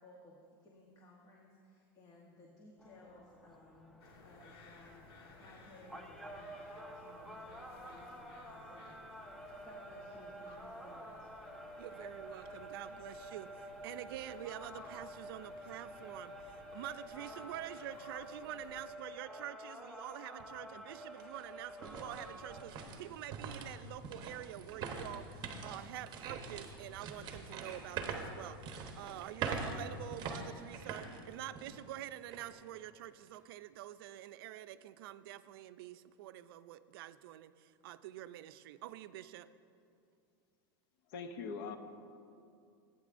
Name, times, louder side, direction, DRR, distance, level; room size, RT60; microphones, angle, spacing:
voice 1, 0.0-9.2 9.6-11.3, left 2 dB, 30° left, -1 dB, 1.0 m, -59 dB
sound 1, 2.8-22.7, right 1 dB, ahead, 0.5 m, -50 dB
sound 2, 4.0-18.8, left 3 dB, 85° left, 1.5 m, -58 dB
voice 2, 11.8-28.6 29.0-39.5, right 13 dB, 75° right, 14 dB, 0.4 m, -47 dB
sound 3, 20.4-20.5 21.0-31.9 32.3-32.4 33.0-33.4, right 5 dB, 35° right, 0.9 m, -43 dB
voice 3, 41.1-41.8, left 5 dB, 65° left, 8 dB, 0.8 m, -41 dB
15.5 x 8.6 x 2.5 m, 2.4 s
supercardioid pair, 140°, 12 cm